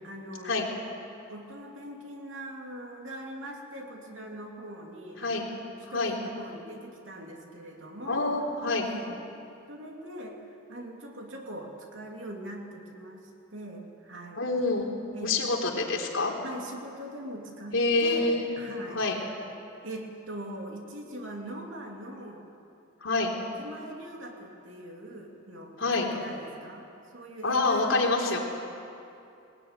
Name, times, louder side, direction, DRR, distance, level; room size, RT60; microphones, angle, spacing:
voice 1, 0.0-0.6 1.3-8.3 8.8-9.2 9.7-14.4 15.1-15.6 16.4-17.8 18.0-19.1 19.8-22.4 23.4-26.9 27.1-28.4, right 1 dB, 70° right, 1 dB, 2.9 m, -41 dB
voice 2, 8.1-8.9 14.4-14.9 15.2-16.3 17.7-18.5 18.9-19.2 23.0-23.3 25.8-26.1 27.4-28.4, left 3 dB, 80° left, -1 dB, 3.8 m, -26 dB
21.0 x 19.0 x 9.7 m, 2.6 s
head